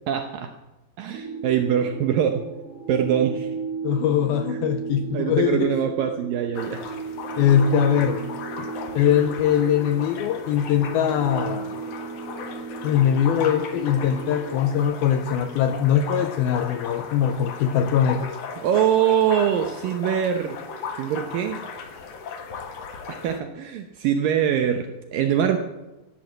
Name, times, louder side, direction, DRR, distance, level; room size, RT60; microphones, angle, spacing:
voice 1, 0.1-0.5 1.0-2.4 2.9-3.5 4.5-4.6 5.1-6.9 18.6-20.6 21.0-21.6 23.1-25.6, right 9 dB, 75° right, 6 dB, 2.1 m, -23 dB
sound 1, 1.1-14.8, right 5 dB, 60° right, 4.2 m, -35 dB
voice 2, 3.8-5.7 7.4-8.2 8.6-8.7 8.9-11.7 12.8-18.3, left 9 dB, 85° left, 9 dB, 2.2 m, -21 dB
sound 2, 6.5-23.4, left 5 dB, 70° left, 1.5 m, -36 dB
14.5 x 12.0 x 7.8 m, 1.0 s
omnidirectional pair, 5.0 m